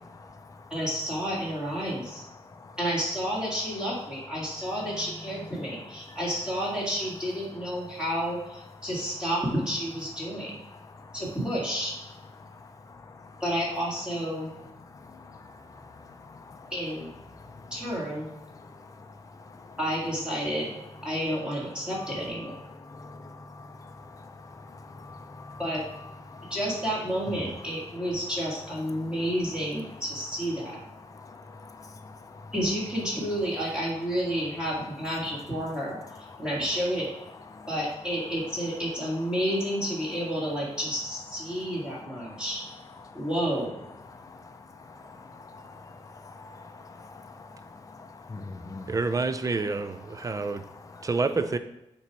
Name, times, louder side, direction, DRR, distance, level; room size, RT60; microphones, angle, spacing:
voice 1, 0.0-0.8 1.8-2.8 3.9-6.3 7.5-8.0 8.8-8.9 10.2-11.2 12.3-13.4 14.3-16.7 17.2-19.8 20.4-21.1 21.7-26.6 27.3-28.3 28.8-30.0 30.8-32.5 34.3-34.4 35.2-36.6 37.4-37.7 38.4-38.8 39.3-39.4 41.5-42.4 42.9-43.3 44.0-49.0 49.5-51.1, left 3 dB, 30° left, 5 dB, 0.5 m, -46 dB
voice 2, 0.7-2.2 2.8-10.6 11.1-11.9 13.4-14.5 16.7-17.1 17.7-18.3 19.8-20.7 21.0-22.5 25.6-25.8 26.5-30.8 32.5-36.0 36.4-37.1 37.7-42.6 43.1-43.8, equal, 5° right, -6 dB, 1.8 m, -30 dB
voice 3, 48.9-50.6 51.0-51.6, right 3 dB, 30° right, 11 dB, 0.4 m, -28 dB
6.9 x 3.0 x 4.6 m, 0.91 s
wide cardioid pair, 100°, 11 cm